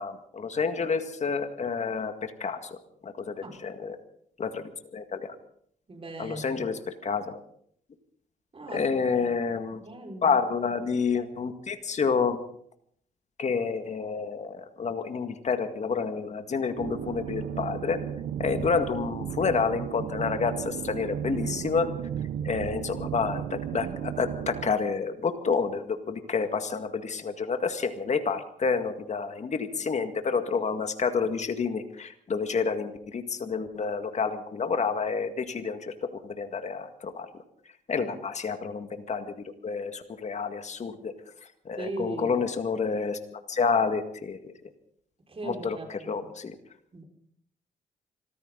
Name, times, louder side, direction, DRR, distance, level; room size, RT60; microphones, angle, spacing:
voice 1, 0.0-2.1 2.4-2.6 3.0-4.0 4.4-5.4 6.2-7.4 8.7-9.8 10.2-12.4 13.4-18.0 18.4-21.9 22.4-37.3 37.9-39.3 39.6-41.1 41.7-44.5 45.4-45.8 46.1-46.5, left 5 dB, 45° left, 7 dB, 2.0 m, -29 dB
voice 2, 5.9-6.7 8.5-9.4 9.8-10.4 37.9-38.1 41.8-42.4 45.3-46.3 46.9-47.0, right 2 dB, 35° right, 2 dB, 5.4 m, -39 dB
sound 1, 16.8-24.7, right 9 dB, 75° right, 1.1 m, -34 dB
25.5 x 14.5 x 4.0 m, 0.64 s
supercardioid pair, 65°, 16 cm